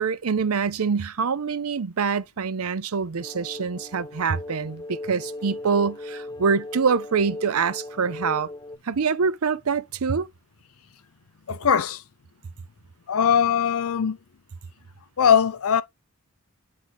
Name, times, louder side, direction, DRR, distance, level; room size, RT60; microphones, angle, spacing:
voice 1, 0.0-8.5 8.8-10.3, right 5 dB, 70° right, 0.6 m, -25 dB
sound 1, 3.2-8.8, left 2 dB, 20° left, 0.3 m, -38 dB
voice 2, 11.5-12.0 13.1-14.2 15.2-15.8, left 7 dB, 70° left, 0.5 m, -20 dB
9.5 x 3.3 x 4.0 m
head